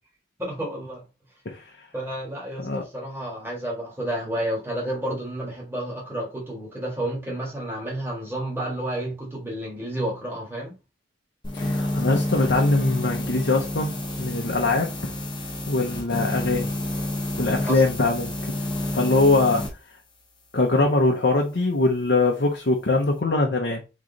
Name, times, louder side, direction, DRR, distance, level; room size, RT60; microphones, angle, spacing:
voice 1, 0.4-1.0 1.9-10.7 17.6-17.8, right 1 dB, 10° right, 1.5 m, -30 dB
sound 1, 11.4-19.7, left 1 dB, 25° left, 0.9 m, -29 dB
voice 2, 11.5-14.9 15.7-16.7 17.4-18.3 18.9-19.6 20.5-23.8, left 2 dB, 55° left, 0.7 m, -22 dB
3.7 x 3.2 x 3.8 m
head